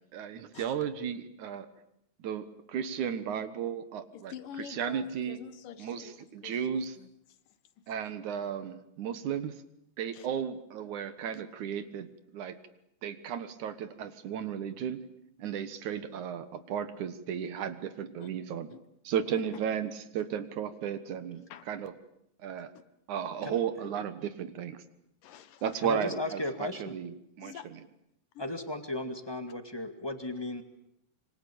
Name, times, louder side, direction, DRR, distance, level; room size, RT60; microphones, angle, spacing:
voice 1, 0.1-1.7 2.2-4.3 4.7-5.4 5.8-6.9 7.9-9.5 10.0-12.6 13.0-15.0 15.4-18.7 19.0-21.9 22.4-22.7 23.1-24.8 25.6-27.5, right 8 dB, 65° right, 12 dB, 2.8 m, -34 dB
voice 2, 4.1-7.1 10.1-10.3 11.3-11.4 18.2-18.3 18.7-18.8 21.5-21.7 22.6-22.7 23.2-23.4 25.2-25.6 27.4-27.8 28.3-28.5, left 9 dB, 80° left, 13 dB, 2.9 m, -47 dB
voice 3, 25.8-26.9 28.4-30.6, left 2 dB, 10° left, 8 dB, 1.5 m, -35 dB
26.0 x 25.0 x 8.7 m, 0.76 s
omnidirectional pair, 3.8 m